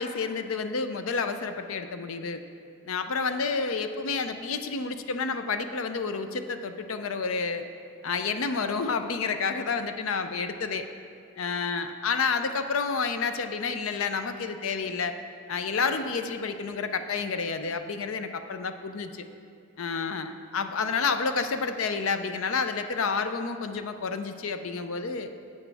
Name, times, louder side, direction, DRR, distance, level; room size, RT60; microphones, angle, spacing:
voice 1, 0.0-2.4 2.8-7.6 8.0-10.8 11.4-15.2 15.5-19.2 19.8-25.3, left 5 dB, 75° left, 9 dB, 0.5 m, -29 dB
9.9 x 8.4 x 3.4 m, 2.4 s
head